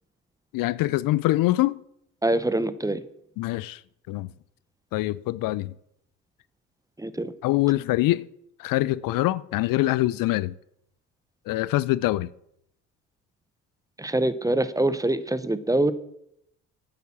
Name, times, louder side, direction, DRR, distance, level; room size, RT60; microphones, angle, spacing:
voice 1, 0.5-1.8 3.4-3.8 4.1-4.3 4.9-5.7 7.4-8.3 8.6-10.5 11.5-12.3, left 17 dB, 65° left, 0.5 m, -24 dB
voice 2, 2.2-3.0 7.0-7.3 14.0-15.9, right 1 dB, 10° right, 0.8 m, -24 dB
9.2 x 8.7 x 7.1 m
supercardioid pair, 65°, 36 cm